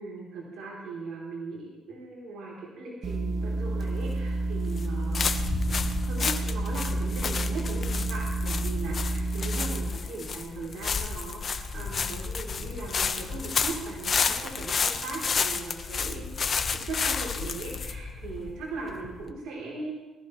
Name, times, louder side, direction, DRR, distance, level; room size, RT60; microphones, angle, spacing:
voice 1, 0.0-5.3 5.7-16.4 16.7-19.9, right 3 dB, 85° right, -4 dB, 3.6 m, -39 dB
sound 1, 3.0-9.9, right 2 dB, 45° right, 1.3 m, -30 dB
sound 2, 3.8-19.3, left 5 dB, 45° left, 1.1 m, -31 dB
20.5 x 14.0 x 3.2 m, 1.1 s
cardioid pair, 90°, 0 cm